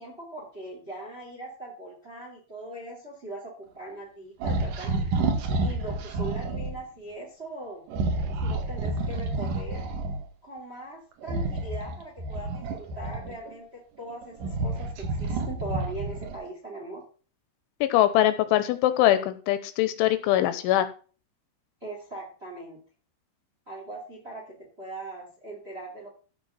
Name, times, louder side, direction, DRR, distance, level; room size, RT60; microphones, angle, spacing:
voice 1, 0.0-5.0 5.6-7.8 8.4-9.9 10.4-17.0 21.8-22.8 23.7-26.1, right 2 dB, 20° right, 2 dB, 1.7 m, -40 dB
sound 1, 4.4-6.7 7.9-10.2 11.2-13.5 14.1-16.5, right 2 dB, 55° right, 2.7 m, -29 dB
voice 2, 17.8-20.9, left 13 dB, 80° left, 12 dB, 3.2 m, -22 dB
14.5 x 5.3 x 5.7 m, 0.38 s
omnidirectional pair, 5.5 m